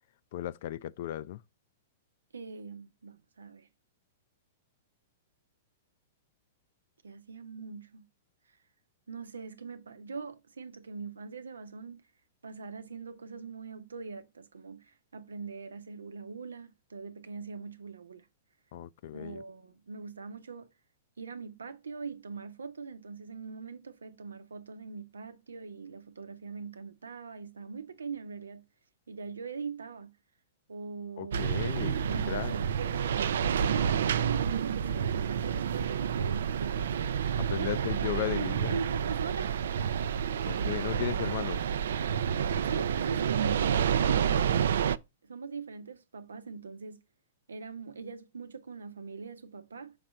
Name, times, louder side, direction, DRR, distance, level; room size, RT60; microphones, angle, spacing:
voice 1, 0.3-1.4 18.7-19.4 31.2-32.0 32.3-32.5 37.5-38.8 40.4-41.6, left 13 dB, 60° left, 0.4 m, -35 dB
voice 2, 2.3-3.7 7.0-8.1 9.1-12.0 12.4-18.3 19.0-20.7 21.2-28.6 29.1-30.1 30.7-31.5 31.9-37.2 37.5-39.6 42.7-44.6 45.2-47.0 47.5-49.9, right 5 dB, 90° right, 0.8 m, -42 dB
sound 1, 31.3-45.0, right 8 dB, 75° right, 0.4 m, -29 dB
5.9 x 3.3 x 5.2 m
hypercardioid pair, 120°, 0 cm